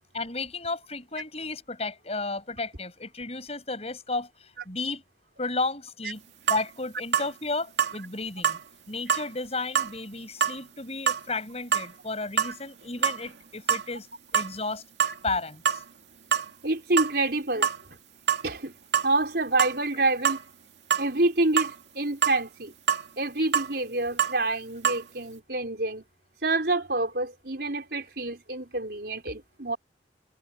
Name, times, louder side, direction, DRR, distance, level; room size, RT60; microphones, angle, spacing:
voice 1, 0.1-5.0 5.4-6.2 6.5-8.6 8.9-14.1 14.3-14.8 15.2-15.8 17.6-17.7, left 3 dB, 35° left, 7.2 m, -33 dB
sound 1, 6.5-6.6 7.1-7.3 7.8-8.0 8.4-8.6 9.1-9.3 9.8-9.9 10.4-10.6 11.1-11.2 11.7-11.9 12.4-12.6 12.9-13.4 13.7-13.9 14.3-14.5 15.0-15.2 15.7-15.8 16.3-16.5 17.0-17.2 17.6-17.8 18.3-18.4 18.9-19.1 19.6-19.8 20.2-20.4 20.9-21.1 21.6-21.8 22.2-22.4 22.9-23.1 23.5-23.7 24.2-24.4 24.8-25.0, right 8 dB, 75° right, 2.4 m, -25 dB
voice 2, 16.6-17.7 18.4-18.8 19.0-20.4 21.0-22.7 23.2-26.0 26.4-29.8, right 2 dB, 60° right, 5.5 m, -27 dB
head